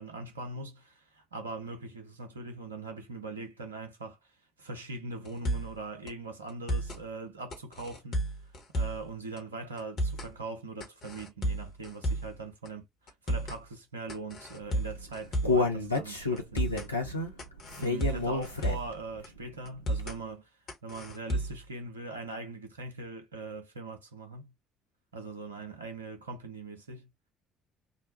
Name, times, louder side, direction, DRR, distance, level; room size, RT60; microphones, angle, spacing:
voice 1, 0.0-4.2 4.6-8.2 8.7-12.8 13.3-16.9 17.8-20.5 20.8-24.5 25.1-27.1, right 3 dB, 80° right, 0.6 m, -41 dB
sound 1, 5.2-5.8 6.1-6.2 6.5-7.0 7.5-9.1 9.4-9.5 9.8-10.3 10.8-12.4 12.6-12.7 13.1-13.6 14.1-15.7 15.9-16.0 16.4-16.9 17.4-19.0 19.2-19.3 19.6-20.2 20.7-21.6, right 1 dB, 50° left, 1.1 m, -32 dB
Human voice, 14.8-19.0 19.4-19.5 20.0-20.1, left 3 dB, 90° left, 0.5 m, -29 dB
2.9 x 2.2 x 2.7 m
figure-of-eight pair, 50°, 0 cm